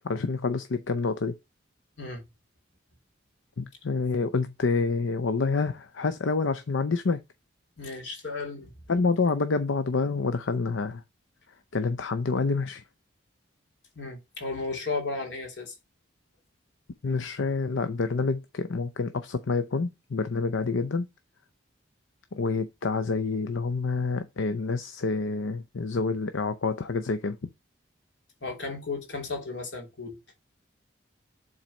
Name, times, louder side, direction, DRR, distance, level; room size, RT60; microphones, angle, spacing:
voice 1, 0.0-1.4 3.6-7.2 8.9-11.0 11.7-12.8 17.0-21.1 22.3-27.4, left 4 dB, 85° left, 0.6 m, -27 dB
voice 2, 2.0-2.3 7.8-8.7 13.9-15.7 28.4-30.2, left 3 dB, 65° left, 2.9 m, -34 dB
7.5 x 4.0 x 5.2 m
head